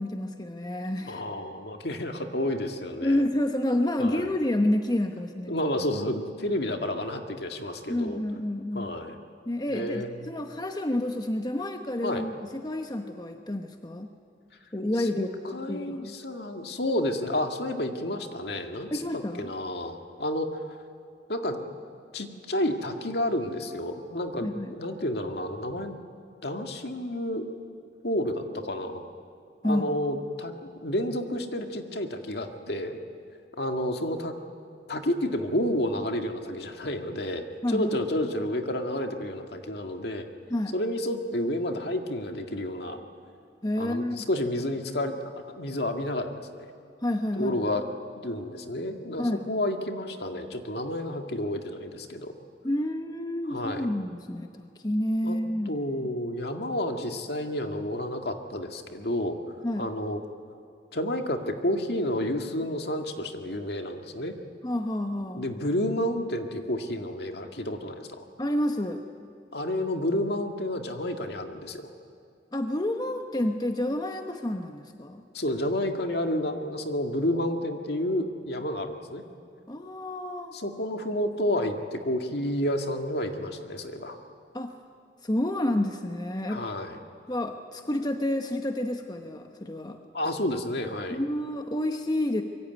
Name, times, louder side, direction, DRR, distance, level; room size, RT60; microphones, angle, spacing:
voice 1, 0.0-1.2 3.0-5.6 7.9-8.9 9.5-12.3 12.6-14.1 14.7-16.1 18.9-19.5 24.4-24.7 29.6-30.0 37.6-38.0 40.5-40.7 43.6-44.2 47.0-47.6 49.2-49.4 52.6-55.7 59.6-59.8 64.6-65.4 68.4-69.0 72.5-75.2 79.7-80.5 84.5-84.7 85.2-86.6 87.3-90.0 91.1-92.4, left 1 dB, 20° left, 5 dB, 1.0 m, -29 dB
voice 2, 1.1-3.2 4.0-4.3 5.5-8.2 8.7-9.2 9.7-10.3 12.0-12.2 15.0-20.5 21.3-21.6 22.1-25.9 26.4-27.5 28.0-29.0 29.6-30.5 30.8-33.0 33.6-34.4 34.9-40.3 40.7-43.0 43.8-46.7 47.4-47.8 48.2-52.3 53.4-53.9 55.2-55.4 55.7-59.4 59.8-60.2 60.9-64.3 65.3-68.3 69.5-71.9 75.3-79.2 80.5-84.2 86.5-87.0 90.1-91.2, left 1 dB, 60° left, 5 dB, 2.0 m, -30 dB
25.0 x 23.0 x 9.2 m, 2.6 s
head